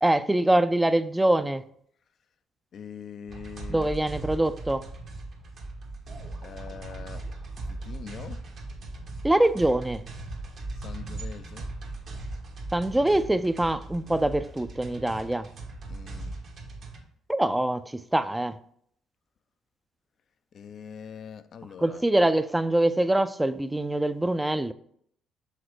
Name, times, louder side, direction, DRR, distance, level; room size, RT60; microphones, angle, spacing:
voice 1, 0.0-1.6 3.7-4.8 9.2-10.0 12.7-15.5 17.3-18.6 21.8-24.7, right 1 dB, 10° right, 0.4 m, -24 dB
voice 2, 2.7-3.9 6.4-7.3 7.6-8.5 10.7-11.7 15.9-16.4 20.5-22.1, left 7 dB, 55° left, 0.4 m, -43 dB
sound 1, 3.3-17.0, right 2 dB, 55° right, 1.4 m, -39 dB
6.4 x 3.9 x 4.8 m
hypercardioid pair, 55°, 0 cm